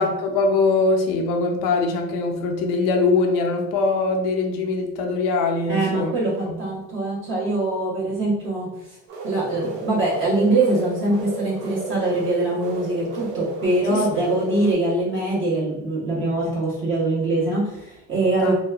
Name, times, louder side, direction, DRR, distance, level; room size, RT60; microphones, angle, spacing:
voice 1, 0.0-6.1 6.5-6.6 13.9-14.2 18.4-18.5, left 3 dB, 75° left, 3 dB, 0.6 m, -22 dB
voice 2, 5.7-8.7 9.2-18.5, right 2 dB, 40° right, -6 dB, 0.9 m, -23 dB
sound 1, 9.1-14.7, right 2 dB, 85° right, 0.7 m, -33 dB
2.9 x 2.2 x 2.3 m, 0.87 s
cardioid pair, 110°, 32 cm